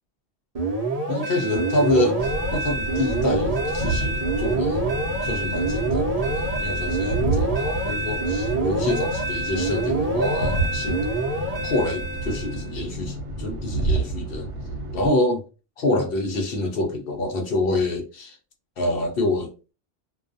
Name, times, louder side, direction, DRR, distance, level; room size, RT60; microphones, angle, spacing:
sound 1, 0.5-12.7, right 2 dB, 40° right, 0.7 m, -26 dB
voice 1, 1.1-4.9 5.2-11.0 11.6-14.5 14.9-15.4 15.8-18.4 18.8-19.7, left 1 dB, 60° left, 0.8 m, -26 dB
sound 2, 2.2-15.1, right 2 dB, 85° right, 1.0 m, -30 dB
2.3 x 2.2 x 2.5 m
omnidirectional pair, 1.2 m